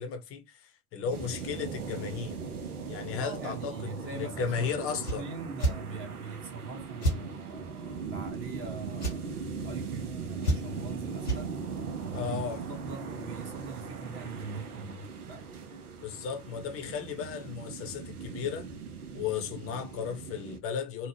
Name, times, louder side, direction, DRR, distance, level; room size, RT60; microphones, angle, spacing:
voice 1, 0.0-2.4 2.9-3.7 4.1-5.3 12.1-12.6 16.0-18.7 19.1-21.1, left 7 dB, 30° left, 0.7 m, -35 dB
sound 1, 1.1-20.6, right 5 dB, 85° right, 0.6 m, -39 dB
voice 2, 3.2-11.6 11.9-15.5, right 3 dB, 30° right, 0.9 m, -42 dB
sound 2, 5.0-5.2 5.6-5.8 7.0-7.2 9.0-9.2 10.4-10.8 11.2-11.4, right 1 dB, 90° left, 1.2 m, -28 dB
2.7 x 2.0 x 3.2 m
figure-of-eight pair, 70°, 44 cm